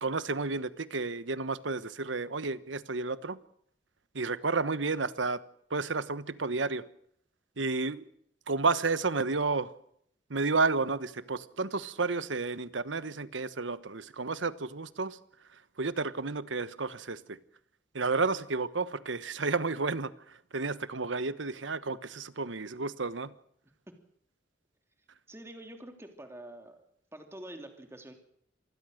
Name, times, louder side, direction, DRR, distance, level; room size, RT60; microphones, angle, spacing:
voice 1, 0.0-3.4 4.1-5.4 5.7-6.8 7.6-8.1 8.5-9.7 10.3-15.2 15.8-17.4 17.9-23.3, right 3 dB, 85° right, 1.2 m, -31 dB
voice 2, 25.3-26.8 27.1-28.1, right 1 dB, 15° right, 3.0 m, -46 dB
26.5 x 20.0 x 6.6 m
head